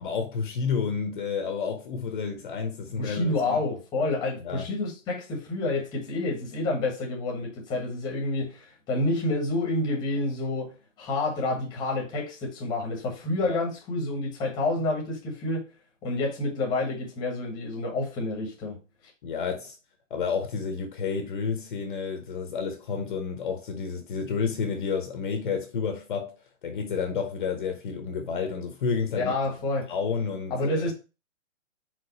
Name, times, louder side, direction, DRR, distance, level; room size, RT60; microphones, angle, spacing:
voice 1, 0.0-3.6 4.4-4.6 13.4-13.6 19.2-19.8 20.1-26.3 26.6-29.3 29.9-30.9, left 5 dB, 40° left, 1.0 m, -30 dB
voice 2, 3.0-10.7 11.0-15.7 16.0-18.8 29.1-29.9 30.5-30.9, left 2 dB, 10° left, 1.2 m, -28 dB
5.0 x 3.8 x 5.4 m
hypercardioid pair, 165°, 38 cm